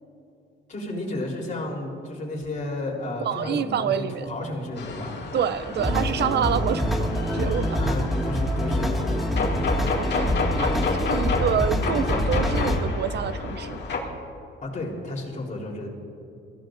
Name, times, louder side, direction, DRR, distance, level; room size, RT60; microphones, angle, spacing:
voice 1, 0.7-5.2 7.8-9.3 14.6-15.9, left 1 dB, 40° left, -1 dB, 3.7 m, -32 dB
voice 2, 3.2-4.3 5.3-7.8 10.0-10.8 11.1-13.8, right 8 dB, 60° right, 13 dB, 0.5 m, -27 dB
sound 1, 4.8-14.0, left 4 dB, 60° left, 2.1 m, -31 dB
sound 2, 5.8-12.8, left 1 dB, ahead, 2.0 m, -25 dB
24.0 x 15.5 x 2.6 m, 2.6 s
cardioid pair, 90°, 20 cm